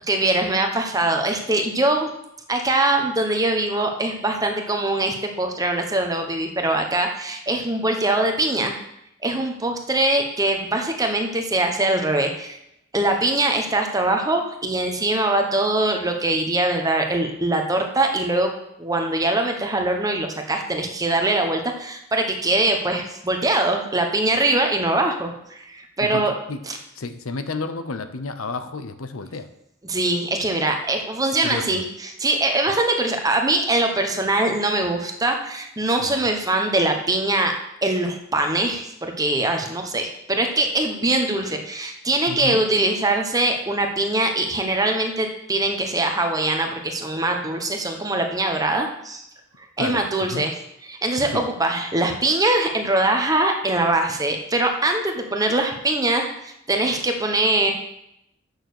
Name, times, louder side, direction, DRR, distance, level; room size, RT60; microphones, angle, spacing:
voice 1, 0.1-2.1 2.5-8.8 9.2-12.6 12.9-18.5 18.8-26.3 26.6-26.8 29.8-37.5 37.8-49.2 49.8-50.5 50.8-57.7, right 2 dB, 15° right, 4 dB, 1.1 m, -22 dB
voice 2, 26.0-26.6 27.0-29.5 31.4-31.8 36.0-36.3 42.3-42.6 49.8-50.0 50.3-50.4 51.3-51.5, left 3 dB, 85° left, 10 dB, 0.8 m, -31 dB
9.0 x 6.4 x 6.6 m, 0.81 s
head